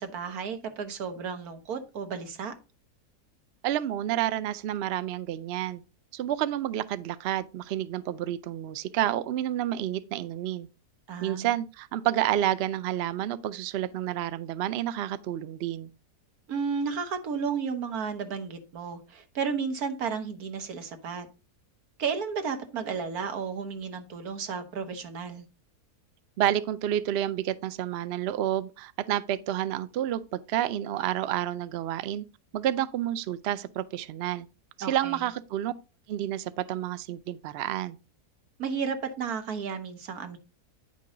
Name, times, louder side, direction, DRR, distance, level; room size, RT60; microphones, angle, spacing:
voice 1, 0.0-2.5 11.1-11.5 16.5-21.3 22.0-25.4 34.8-35.2 38.6-40.4, right 6 dB, 70° right, 1.6 m, -33 dB
voice 2, 3.6-5.8 6.1-10.7 11.2-15.9 26.4-32.2 32.5-34.5 34.8-35.7 36.1-38.0, right 12 dB, 85° right, 0.5 m, -29 dB
9.5 x 5.3 x 3.8 m
omnidirectional pair, 1.7 m